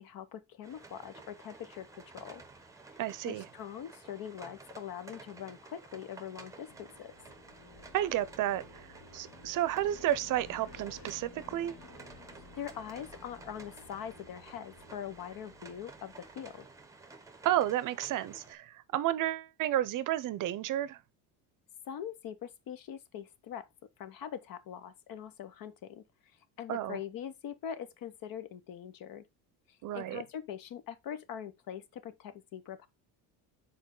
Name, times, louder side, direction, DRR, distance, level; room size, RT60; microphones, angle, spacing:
voice 1, 0.0-1.9 2.1-2.4 2.9-3.0 3.2-7.1 12.5-16.7 21.9-23.7 24.0-26.0 26.6-29.3 29.7-32.9, left 9 dB, 55° left, 1.0 m, -43 dB
sound 1, 0.6-18.6, right 3 dB, 10° right, 0.9 m, -53 dB
voice 2, 3.0-3.4 7.9-8.9 9.1-11.7 17.4-21.0 26.7-27.0 29.8-30.2, right 13 dB, 50° right, 0.6 m, -31 dB
sound 2, 6.7-16.9, left 3 dB, 80° left, 2.6 m, -54 dB
7.2 x 4.5 x 3.7 m
cardioid pair, 145°, 40 cm